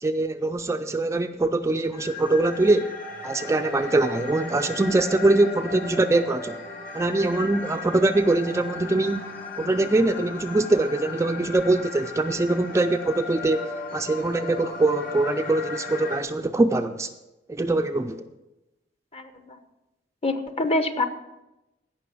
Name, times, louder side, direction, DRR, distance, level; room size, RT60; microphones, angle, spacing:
voice 1, 0.0-2.9 3.2-6.6 6.9-9.3 9.6-17.1 17.5-18.2, right 2 dB, 15° right, 7 dB, 0.4 m, -23 dB
sound 1, 1.9-16.2, left 3 dB, 50° left, 2.0 m, -36 dB
voice 2, 19.1-19.6 20.2-21.0, left 2 dB, 35° left, 9 dB, 0.9 m, -26 dB
16.5 x 5.7 x 6.1 m, 1.0 s
head